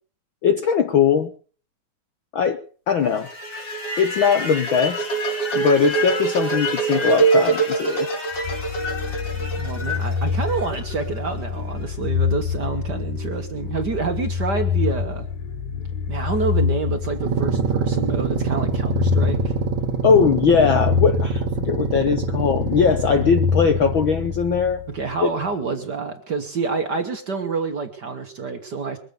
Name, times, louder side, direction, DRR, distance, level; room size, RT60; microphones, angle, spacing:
voice 1, 0.4-1.3 2.3-3.3 4.0-5.1 5.5-8.1 20.0-24.8 25.2-25.3, left 6 dB, 90° left, 8 dB, 1.1 m, -20 dB
sound 1, 3.1-11.2, right 3 dB, 45° left, 5.2 m, -24 dB
sound 2, 8.4-25.3, left 6 dB, 75° left, 3.7 m, -26 dB
voice 2, 9.6-15.3 16.1-19.5 24.9-29.0, right 4 dB, 45° right, 5 dB, 1.4 m, -28 dB
sound 3, 17.1-24.4, right 7 dB, 70° right, 2.6 m, -26 dB
22.5 x 8.4 x 6.9 m, 0.43 s
omnidirectional pair, 3.6 m